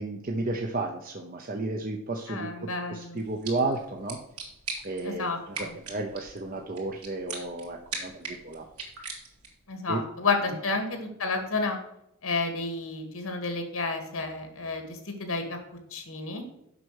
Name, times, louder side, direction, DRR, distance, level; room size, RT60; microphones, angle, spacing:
voice 1, 0.0-2.5 2.9-4.2 4.8-8.6 9.9-10.0, right 2 dB, 40° right, 2 dB, 0.7 m, -32 dB
voice 2, 2.3-3.2 5.0-5.7 9.7-11.8 12.2-15.6 15.9-16.4, left 3 dB, 70° left, 5 dB, 2.1 m, -31 dB
sound 1, 3.2-9.7, right 4 dB, 85° right, 2.8 m, -41 dB
7.8 x 6.0 x 6.3 m, 0.81 s
head